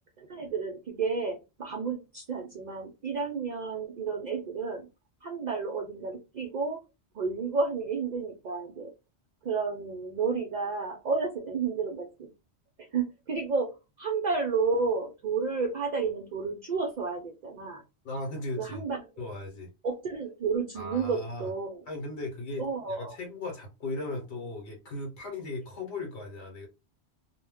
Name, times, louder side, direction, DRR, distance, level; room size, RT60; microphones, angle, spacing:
voice 1, 0.2-4.9 5.2-6.8 7.1-8.9 9.4-12.3 12.9-17.8 18.6-19.3 19.8-21.8 22.6-23.2, right 4 dB, 55° right, 0.5 m, -31 dB
voice 2, 18.0-18.8 19.2-19.7 20.7-21.5 21.9-26.7, left 2 dB, 80° left, 1.1 m, -37 dB
2.1 x 2.1 x 3.4 m
omnidirectional pair, 1.1 m